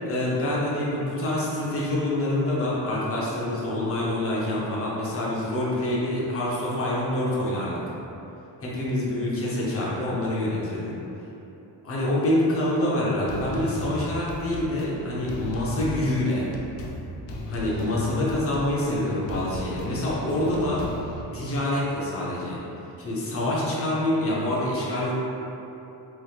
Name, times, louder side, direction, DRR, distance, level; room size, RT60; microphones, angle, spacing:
voice 1, 0.1-7.8 8.6-10.9 11.8-16.5 17.5-20.8 21.3-22.6 23.0-25.1, left 1 dB, 35° left, -5 dB, 0.6 m, -26 dB
sound 1, 13.3-21.2, left 1 dB, 85° left, 0.5 m, -36 dB
3.3 x 3.0 x 2.3 m, 3.0 s
cardioid pair, 170°, 42 cm